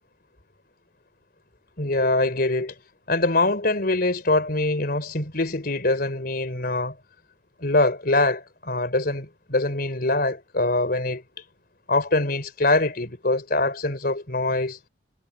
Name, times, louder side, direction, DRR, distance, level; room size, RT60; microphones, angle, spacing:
voice 1, 1.8-2.7 3.1-7.0 7.6-11.2 11.9-14.8, left 2 dB, 55° left, 4.1 m, -23 dB
head